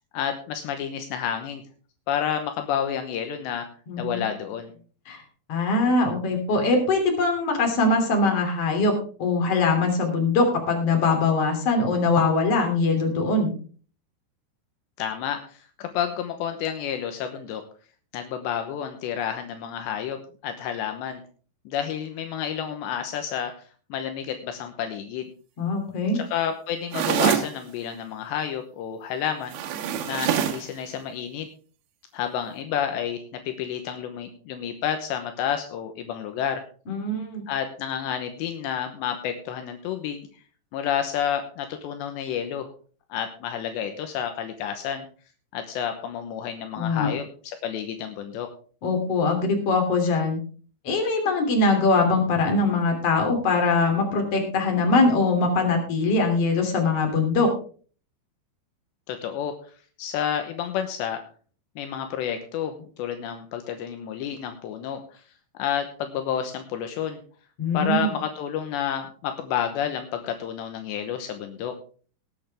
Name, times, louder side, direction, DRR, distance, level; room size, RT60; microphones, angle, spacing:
voice 1, 0.1-1.6 2.1-3.7 4.0-4.7 15.0-17.6 18.1-21.2 21.7-23.5 23.9-25.3 26.1-29.6 30.1-31.5 32.1-36.6 37.5-40.3 40.7-42.7 43.1-45.1 45.5-48.5 59.1-59.6 60.0-61.2 61.8-65.2 65.6-67.2 67.7-71.7, left 9 dB, 80° left, 6 dB, 3.1 m, -30 dB
voice 2, 3.9-4.2 5.1-5.2 5.5-8.9 9.2-13.5 25.6-26.2 36.9-37.4 46.8-47.1 48.8-50.4 50.8-57.5 67.6-68.0, left 3 dB, 35° left, 3 dB, 3.5 m, -22 dB
sound 1, 26.9-27.5 29.5-30.7, right 9 dB, 75° right, 3.6 m, -24 dB
19.0 x 9.0 x 3.4 m, 0.41 s
omnidirectional pair, 5.2 m